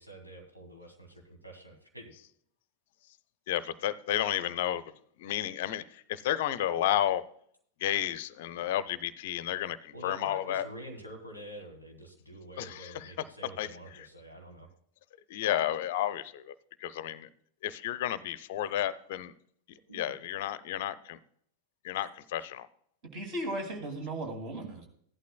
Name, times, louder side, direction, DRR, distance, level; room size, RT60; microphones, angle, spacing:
voice 1, 0.0-2.1 9.9-14.7 19.9-20.0, right 1 dB, 85° right, 2 dB, 2.1 m, -47 dB
voice 2, 3.5-4.8 5.2-7.2 7.8-10.6 12.6-13.1 13.6-13.7 15.3-16.5 16.8-17.3 17.6-19.3 19.9-21.2 21.8-22.7, left 12 dB, 55° left, 16 dB, 0.5 m, -32 dB
voice 3, 23.0-24.9, right 1 dB, 40° right, 4 dB, 2.5 m, -36 dB
15.5 x 11.5 x 2.3 m, 0.65 s
figure-of-eight pair, 90°, 0 cm